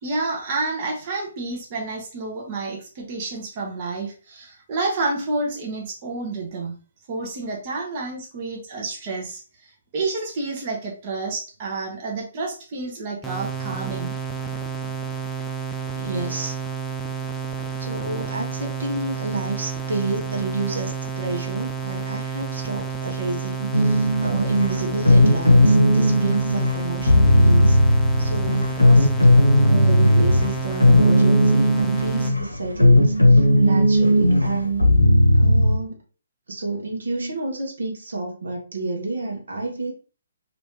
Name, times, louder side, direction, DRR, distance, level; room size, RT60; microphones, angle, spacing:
voice 1, 0.0-6.8 7.1-14.1, right 3 dB, 35° right, 0 dB, 0.8 m, -29 dB
sound 1, 13.2-32.3, right 6 dB, ahead, 0.4 m, -30 dB
voice 2, 16.0-16.6 17.8-27.8 28.2-29.1 29.6-34.9 35.3-36.0 36.5-39.9, right 3 dB, 65° right, 1 dB, 0.9 m, -29 dB
sound 2, 23.7-35.8, left 1 dB, 90° left, 0.7 m, -16 dB
3.0 x 2.5 x 3.0 m, 0.36 s
figure-of-eight pair, 130°, 0 cm